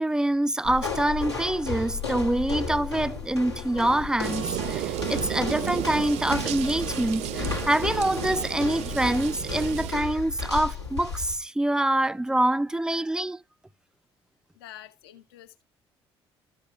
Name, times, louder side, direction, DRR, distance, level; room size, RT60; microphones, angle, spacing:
voice 1, 0.0-13.4, right 1 dB, 5° right, 0.4 m, -25 dB
sound 1, 0.6-11.4, left 5 dB, 90° left, 1.6 m, -34 dB
sound 2, 3.7-9.1, left 6 dB, 35° left, 0.9 m, -44 dB
sound 3, 4.2-9.9, right 13 dB, 55° right, 0.5 m, -33 dB
voice 2, 14.5-15.6, left 12 dB, 70° left, 0.8 m, -47 dB
13.5 x 6.5 x 2.4 m
figure-of-eight pair, 50°, 14 cm